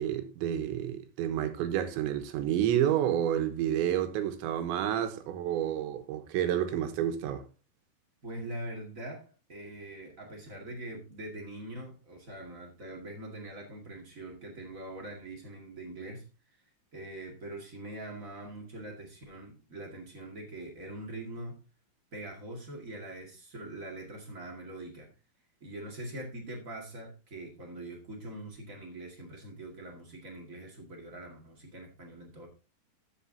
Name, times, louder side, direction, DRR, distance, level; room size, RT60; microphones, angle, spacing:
voice 1, 0.0-7.4, right 10 dB, 80° right, 3.3 m, -29 dB
voice 2, 8.2-16.6 16.9-21.6 22.1-25.1 25.6-32.5, right 1 dB, 45° right, 1.0 m, -43 dB
14.0 x 7.1 x 2.7 m
omnidirectional pair, 5.3 m